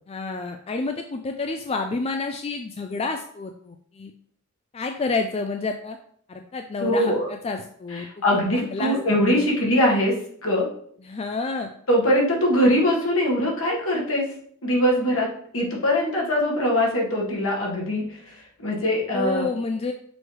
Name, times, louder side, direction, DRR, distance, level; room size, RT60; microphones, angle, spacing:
voice 1, 0.1-4.1 4.7-6.0 6.3-8.1 8.5-9.0 9.3-9.5 11.0-11.7 19.1-19.9, left 3 dB, 30° left, 5 dB, 0.4 m, -29 dB
voice 2, 6.8-7.3 7.9-10.7 11.9-14.4 14.6-18.3 18.6-19.5, equal, 65° left, -2 dB, 1.8 m, -22 dB
6.2 x 4.6 x 3.3 m, 0.63 s
head